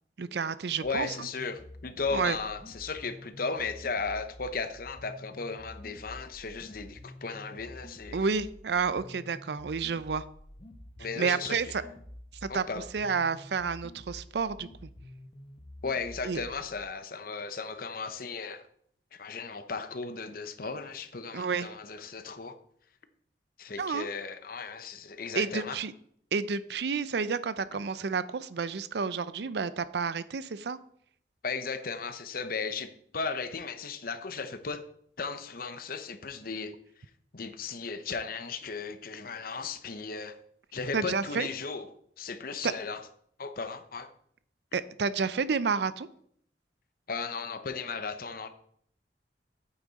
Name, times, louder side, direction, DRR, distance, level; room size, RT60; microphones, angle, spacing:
voice 1, 0.2-1.1 2.1-2.4 8.1-10.3 11.2-11.8 12.4-12.6 12.9-14.7 16.2-16.4 21.3-21.7 23.8-24.1 25.3-25.9 26.3-30.8 40.9-41.5 42.6-42.7 44.7-46.1, right 5 dB, 65° right, 0.5 m, -30 dB
voice 2, 0.8-8.2 11.0-11.7 12.5-12.9 15.8-18.6 19.1-22.6 23.6-25.8 31.4-34.8 35.2-36.7 37.3-40.4 40.7-41.9 42.2-43.0 43.4-44.1 47.1-48.5, left 4 dB, 55° left, 0.8 m, -36 dB
sound 1, 0.8-16.8, left 1 dB, 30° left, 1.0 m, -49 dB
8.8 x 8.3 x 4.1 m
head